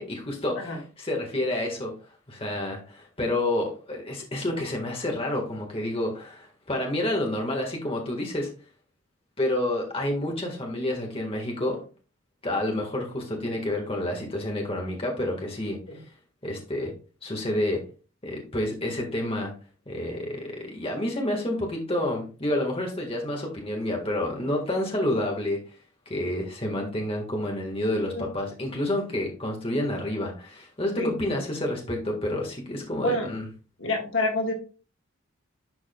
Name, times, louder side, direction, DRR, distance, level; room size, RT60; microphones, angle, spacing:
voice 1, 0.0-1.9 2.3-8.5 9.4-11.8 12.4-15.8 16.4-16.9 17.2-17.8 18.2-19.5 19.9-25.6 26.0-33.5, left 1 dB, 25° left, 0 dB, 1.6 m, -29 dB
voice 2, 33.8-34.5, left 2 dB, 65° left, 2 dB, 1.7 m, -27 dB
11.0 x 4.9 x 2.3 m, 0.35 s
head